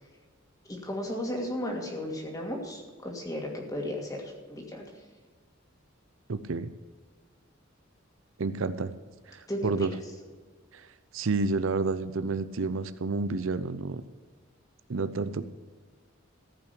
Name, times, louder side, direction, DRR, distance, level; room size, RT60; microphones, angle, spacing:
voice 1, 0.7-4.8 9.5-9.9, left 1 dB, 20° left, 0 dB, 2.6 m, -34 dB
voice 2, 6.3-6.7 8.4-8.9 9.3-9.9 10.7-10.9 11.1-14.0 14.9-15.5, right 3 dB, 80° right, 12 dB, 0.6 m, -30 dB
14.5 x 5.9 x 8.4 m, 1.5 s
head